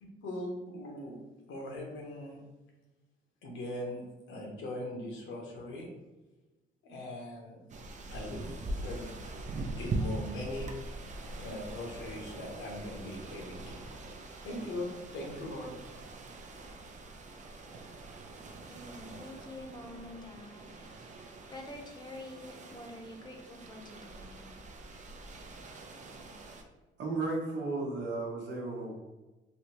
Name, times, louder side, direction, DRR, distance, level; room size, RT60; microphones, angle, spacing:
voice 1, 0.0-1.1 1.5-2.4 3.4-4.0 4.3-5.9 6.8-7.6 8.1-9.1 9.8-10.7 11.4-13.8 14.4-15.8, left 1 dB, 85° left, -1 dB, 0.9 m, -40 dB
sound 1, 7.7-26.6, right 2 dB, 40° right, 0.5 m, -42 dB
voice 2, 18.7-21.1 21.5-24.6, left 1 dB, 20° left, 2 dB, 0.7 m, -47 dB
voice 3, 27.0-29.0, right 3 dB, 65° right, -1 dB, 0.9 m, -34 dB
3.3 x 2.6 x 3.0 m, 1.1 s
cardioid pair, 90°, 20 cm